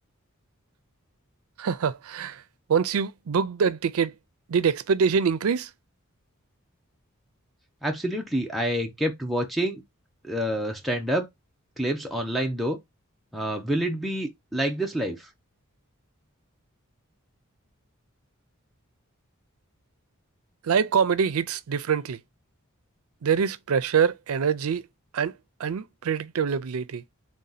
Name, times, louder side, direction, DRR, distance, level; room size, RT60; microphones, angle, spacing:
voice 1, 1.6-2.4 2.7-4.1 4.5-5.7 20.7-22.2 23.2-24.8 25.1-25.3 25.6-27.0, right 6 dB, 85° right, 0.4 m, -24 dB
voice 2, 7.8-9.8 10.2-11.3 11.8-12.8 13.3-15.3, equal, ahead, 0.6 m, -27 dB
3.6 x 2.8 x 3.9 m
head